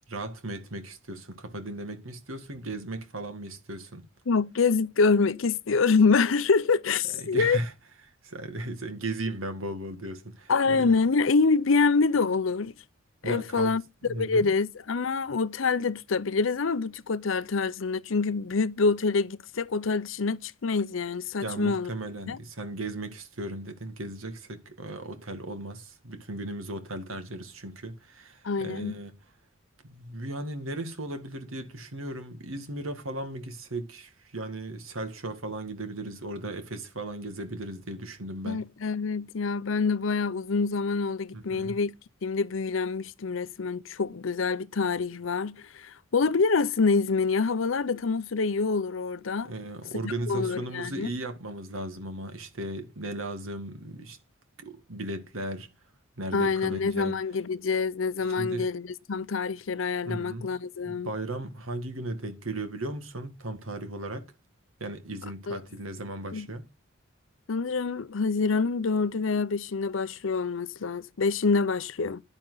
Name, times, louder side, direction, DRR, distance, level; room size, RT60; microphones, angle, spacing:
voice 1, 0.1-4.0 7.2-7.7 8.2-11.0 13.2-13.7 14.0-14.5 21.4-29.2 29.8-38.6 41.3-41.8 49.4-54.2 54.6-55.7 56.2-57.2 58.2-58.7 60.0-60.5 60.8-64.3 64.8-66.6, right 1 dB, 85° right, 2.1 m, -36 dB
voice 2, 4.3-7.6 10.5-12.7 13.2-21.9 22.3-22.4 28.4-29.0 38.4-41.9 42.2-49.5 50.0-51.1 56.3-61.1 65.5-65.6 66.3-66.5 67.5-72.2, left 4 dB, 70° left, 0.6 m, -26 dB
11.0 x 10.0 x 4.0 m
head